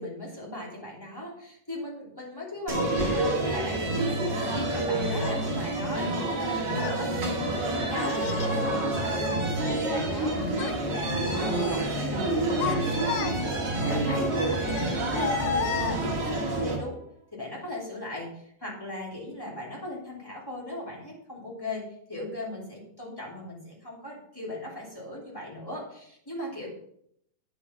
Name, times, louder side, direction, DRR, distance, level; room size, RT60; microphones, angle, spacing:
voice 1, 0.0-17.0 17.3-21.8 22.1-26.7, left 1 dB, 5° left, -4 dB, 2.5 m, -39 dB
sound 1, 2.7-16.8, right 2 dB, 35° right, 2.1 m, -28 dB
Child speech kid speaking, 5.2-5.4 6.3-7.0 8.0-8.6 9.0-10.2 10.5-10.8 11.2-11.8 12.3-13.7 14.7-16.4, left 7 dB, 80° left, 2.7 m, -34 dB
9.4 x 7.4 x 5.7 m, 0.71 s
omnidirectional pair, 4.5 m